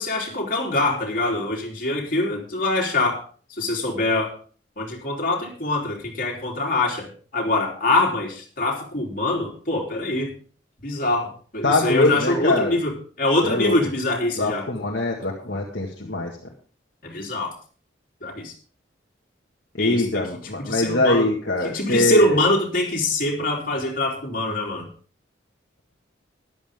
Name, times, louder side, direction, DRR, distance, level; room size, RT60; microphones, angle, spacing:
voice 1, 0.0-3.2 3.6-4.3 4.8-10.3 10.8-14.7 17.0-17.5 18.2-18.5 19.8-20.2 20.6-21.3 21.6-24.9, left 2 dB, 45° left, -1 dB, 3.7 m, -24 dB
voice 2, 11.6-12.7 13.4-13.8 14.4-16.3 19.8-22.4, left 2 dB, 65° left, -2 dB, 1.9 m, -22 dB
14.0 x 11.5 x 3.7 m, 0.41 s
head